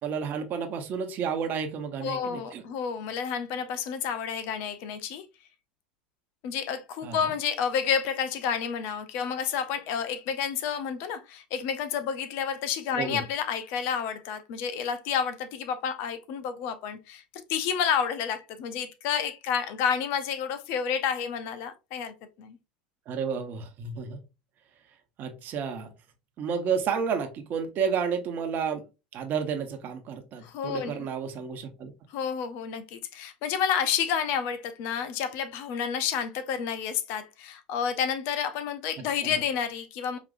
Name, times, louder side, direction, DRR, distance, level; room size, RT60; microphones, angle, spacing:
voice 1, 0.0-2.6 7.0-7.2 13.0-13.2 23.1-24.2 25.2-25.9 26.4-28.8 29.1-31.9 39.2-39.3, right 6 dB, 45° right, 1.1 m, -31 dB
voice 2, 2.0-5.2 6.4-17.2 17.5-22.6 30.4-31.1 32.1-40.2, left 7 dB, 60° left, 0.7 m, -30 dB
5.1 x 2.9 x 2.6 m
hypercardioid pair, 85°, 4 cm